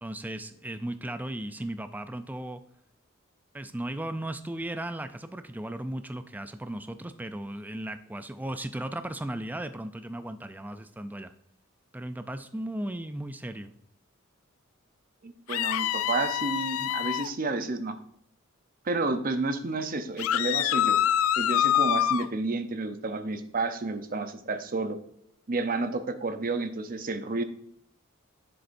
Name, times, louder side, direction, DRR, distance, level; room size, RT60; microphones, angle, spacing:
voice 1, 0.0-2.6 3.5-11.3 11.9-13.7, right 1 dB, 10° right, 10 dB, 0.4 m, -36 dB
voice 2, 15.2-17.9 18.8-21.0 21.4-25.0 25.5-27.4, right 3 dB, 45° right, 9 dB, 0.7 m, -30 dB
sound 1, 15.5-17.3 20.2-22.3, left 11 dB, 85° left, 0.3 m, -26 dB
7.6 x 6.8 x 2.6 m, 0.71 s
head